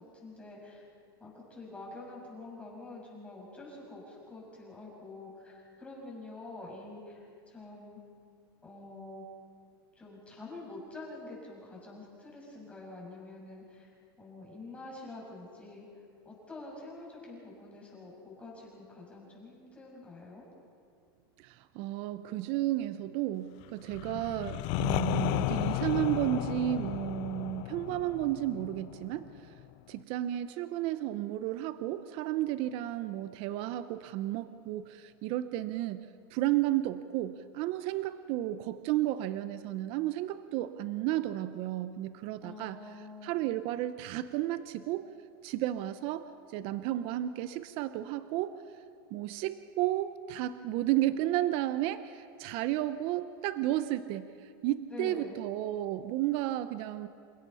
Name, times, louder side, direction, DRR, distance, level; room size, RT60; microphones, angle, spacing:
voice 1, 0.1-0.8 1.2-8.0 8.6-9.2 9.9-13.9 14.2-15.9 16.2-20.4 42.4-43.4 54.9-55.4, left 2 dB, 10° left, -4 dB, 6.7 m, -46 dB
voice 2, 21.4-29.5 29.9-45.1 45.4-48.6 49.1-57.1, right 14 dB, 45° right, 13 dB, 0.7 m, -33 dB
sound 1, 23.9-29.6, left 19 dB, 45° left, 0.4 m, -34 dB
28.0 x 16.5 x 5.6 m, 2.3 s
supercardioid pair, 140°, 13 cm